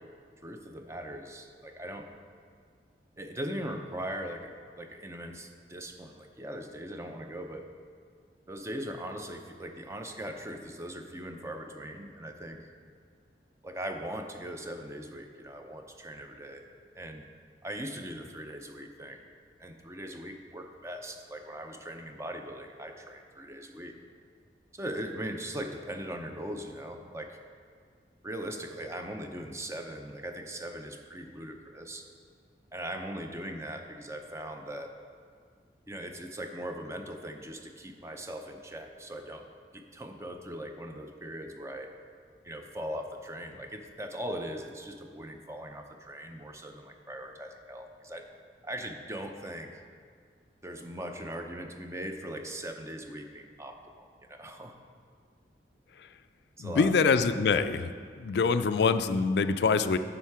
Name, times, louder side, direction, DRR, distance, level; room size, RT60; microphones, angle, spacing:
voice 1, 0.4-2.1 3.2-7.7 8.5-12.7 13.6-16.7 16.9-17.3 17.6-19.2 19.6-24.0 24.7-27.4 28.2-32.1 32.7-35.0 35.9-39.5 39.7-41.9 42.4-48.3 48.6-49.8 50.6-54.8 56.6-57.0, right 1 dB, 15° right, 5 dB, 0.6 m, -40 dB
voice 2, 56.6-57.9 58.2-60.0, left 5 dB, 65° left, 11 dB, 0.4 m, -25 dB
10.0 x 6.4 x 4.7 m, 2.1 s
head